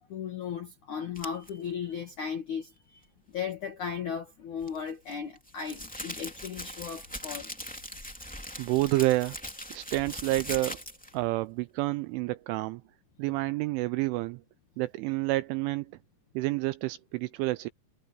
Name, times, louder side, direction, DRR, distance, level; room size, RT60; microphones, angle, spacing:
voice 1, 0.1-7.5 8.5-8.7, left 7 dB, 70° left, 1.8 m, -36 dB
sound 1, 1.1-1.5 4.6-11.2, equal, 5° left, 0.7 m, -40 dB
voice 2, 8.6-9.4 9.7-10.8 11.1-12.8 13.2-14.4 14.8-15.9 16.4-17.7, right 19 dB, 85° right, 2.8 m, -29 dB
omnidirectional pair, 6.0 m